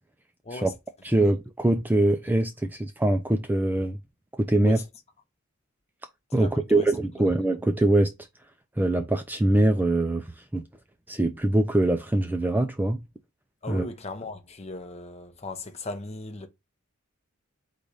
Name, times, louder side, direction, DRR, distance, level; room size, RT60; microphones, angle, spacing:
voice 1, 1.0-4.0 4.4-4.8 6.3-8.1 8.8-10.6 11.1-13.0 13.7-13.9, right 1 dB, 10° right, 0.3 m, -23 dB
voice 2, 6.3-6.9 7.2-7.6 13.6-16.5, left 2 dB, 30° left, 0.7 m, -37 dB
4.0 x 2.5 x 4.7 m
head